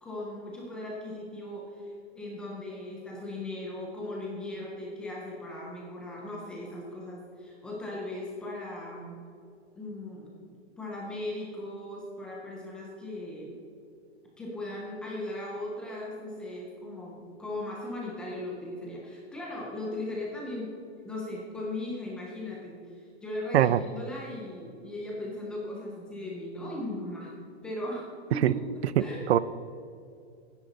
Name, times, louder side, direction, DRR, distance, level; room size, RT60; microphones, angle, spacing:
voice 1, 0.0-9.2 9.8-10.3 10.8-13.6 14.4-20.7 21.0-22.8 23.2-27.3 27.6-28.6 29.0-29.4, left 1 dB, 5° left, -4 dB, 0.4 m, -38 dB
voice 2, 29.0-29.4, right 12 dB, 70° right, 18 dB, 0.5 m, -22 dB
13.0 x 9.8 x 3.9 m, 2.5 s
hypercardioid pair, 165°, 33 cm